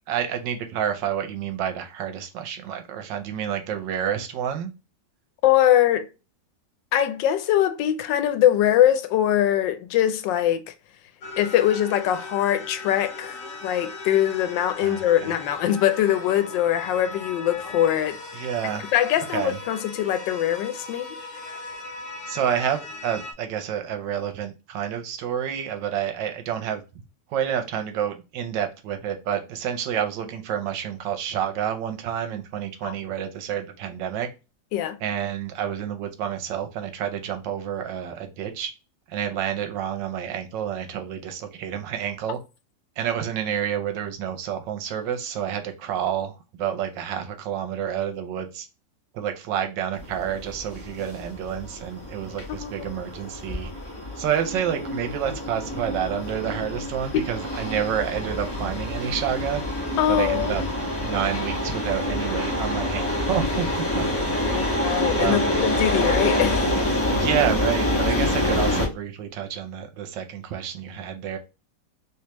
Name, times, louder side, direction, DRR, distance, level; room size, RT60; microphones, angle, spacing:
voice 1, 0.1-4.7 14.8-15.3 18.3-18.9 19.3-19.6 22.3-26.8 27.3-34.3 35.0-38.7 39.1-42.4 43.0-48.7 49.1-53.7 54.2-59.6 60.1-60.6 61.0-64.1 65.2-65.5 67.1-71.4, right 9 dB, 80° right, 1.4 m, -29 dB
voice 2, 5.4-6.1 6.9-10.6 11.4-18.2 18.7-21.1 32.8-32.9 34.7-35.0 52.5-52.9 57.1-57.2 60.0-60.6 64.4-66.7, left 11 dB, 80° left, 1.3 m, -22 dB
sound 1, 11.2-23.3, left 3 dB, 55° left, 1.0 m, -38 dB
sound 2, 49.9-68.9, left 1 dB, 15° left, 0.5 m, -27 dB
3.4 x 3.1 x 2.9 m
omnidirectional pair, 2.0 m